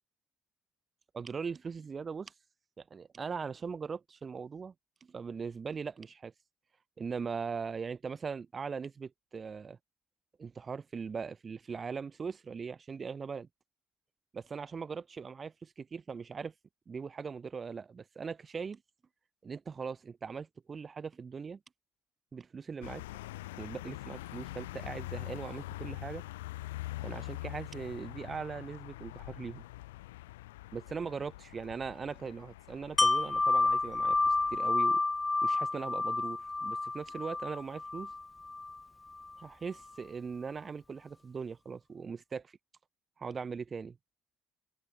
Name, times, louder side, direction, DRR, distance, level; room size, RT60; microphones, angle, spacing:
voice 1, 1.1-2.3 2.8-4.7 5.0-6.3 7.0-9.8 10.4-13.5 14.3-16.5 16.9-18.8 19.4-21.6 22.3-23.0 23.6-26.2 27.0-29.6 30.7-35.0 35.4-38.1 39.4-42.5 43.2-44.0, right 5 dB, 40° right, 7.6 m, -40 dB
sound 1, 22.8-34.6, left 18 dB, 80° left, 2.8 m, -44 dB
Wind chime, 33.0-38.8 39.2-39.3, left 3 dB, 20° left, 0.8 m, -30 dB
hypercardioid pair, 50°, 0 cm